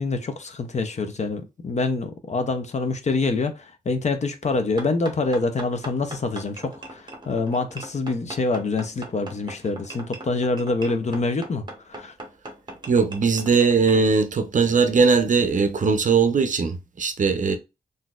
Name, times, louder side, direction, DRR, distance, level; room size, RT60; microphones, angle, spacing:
voice 1, 0.0-12.1, left 3 dB, 45° left, 0.6 m, -26 dB
sound 1, 4.8-14.0, right 2 dB, 25° right, 0.9 m, -40 dB
voice 2, 12.9-17.6, right 5 dB, 50° right, 0.6 m, -20 dB
3.9 x 2.6 x 2.3 m
cardioid pair, 85°, 17 cm